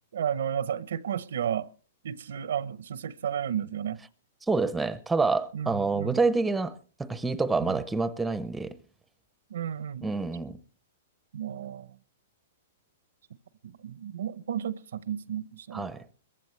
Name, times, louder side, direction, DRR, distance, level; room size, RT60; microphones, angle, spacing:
voice 1, 0.1-1.7 2.0-4.0 5.5-6.2 7.6-7.7 9.5-10.1 11.3-11.9 13.8-15.9, right 9 dB, 80° right, 0.8 m, -32 dB
voice 2, 4.5-8.8 10.0-10.6 15.7-16.0, right 3 dB, 5° right, 0.6 m, -27 dB
21.0 x 15.0 x 3.2 m
hypercardioid pair, 150°, 0 cm